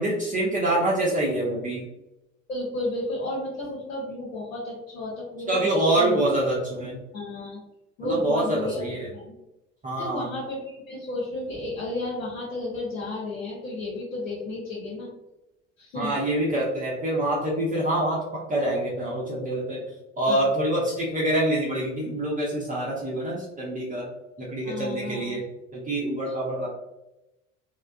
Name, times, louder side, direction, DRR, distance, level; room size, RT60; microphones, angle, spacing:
voice 1, 0.0-1.9 5.5-7.0 8.0-9.1 9.8-10.3 15.9-19.8 20.2-24.1 24.4-25.4 25.7-26.7, right 1 dB, 20° right, -6 dB, 0.7 m, -26 dB
voice 2, 2.5-5.6 6.0-6.2 7.1-7.6 8.0-8.8 9.1-9.4 10.0-15.1 15.8-16.1 20.3-20.5 24.6-25.4, left 2 dB, 80° left, -7 dB, 0.9 m, -32 dB
3.3 x 2.2 x 2.3 m, 0.95 s
figure-of-eight pair, 55°, 40 cm